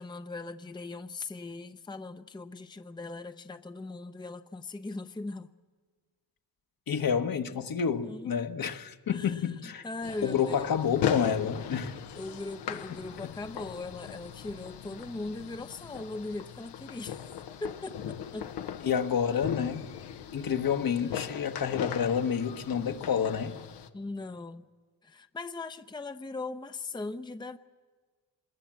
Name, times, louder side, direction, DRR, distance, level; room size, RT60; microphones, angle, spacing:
voice 1, 0.0-5.5 8.0-8.4 9.1-10.7 12.1-17.3 17.6-18.5 20.9-21.3 23.9-24.7 25.0-27.6, left 3 dB, 10° left, 0.8 m, -40 dB
voice 2, 6.9-9.8 10.2-12.0 18.8-19.8 20.3-23.6, left 7 dB, 55° left, 1.4 m, -29 dB
sound 1, 10.0-23.9, left 9 dB, 75° left, 1.2 m, -38 dB
25.5 x 21.0 x 7.6 m
supercardioid pair, 60°, 42 cm